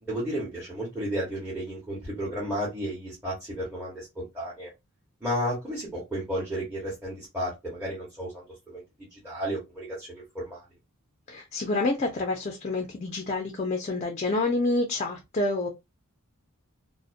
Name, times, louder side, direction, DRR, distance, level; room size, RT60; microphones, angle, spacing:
voice 1, 0.0-4.7 5.2-8.8 9.1-10.6, equal, 5° right, 0.9 m, -33 dB
voice 2, 11.3-15.7, left 2 dB, 30° left, 0.4 m, -28 dB
2.5 x 2.1 x 2.4 m
head